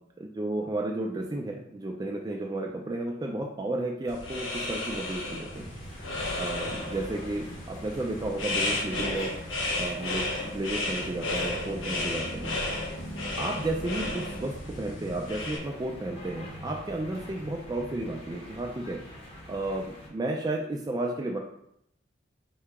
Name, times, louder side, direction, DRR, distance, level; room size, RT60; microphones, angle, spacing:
voice 1, 0.2-5.7 6.3-9.3 9.8-12.6 13.4-19.0 19.5-21.4, right 2 dB, 20° right, 0 dB, 0.3 m, -33 dB
sound 1, 4.1-15.6, left 2 dB, 90° left, 0.8 m, -33 dB
sound 2, 5.5-20.1, equal, 30° left, 0.8 m, -43 dB
4.6 x 2.8 x 3.4 m, 0.74 s
head